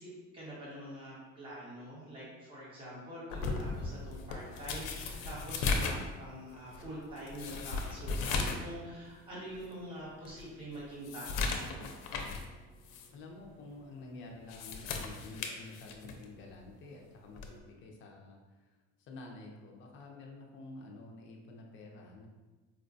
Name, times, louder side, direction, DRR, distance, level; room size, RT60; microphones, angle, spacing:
voice 1, 0.0-11.9, right 1 dB, 15° right, -8 dB, 1.0 m, -45 dB
sound 1, 3.3-8.7 9.0-9.1 9.7-9.8 10.2-12.5 12.8-13.1 14.3-16.3 17.4-17.6, left 4 dB, 85° left, 0.5 m, -36 dB
voice 2, 13.1-18.4 18.7-22.3, left 2 dB, 40° left, 0 dB, 0.5 m, -49 dB
4.4 x 2.1 x 2.5 m, 1.2 s
cardioid pair, 165°, 31 cm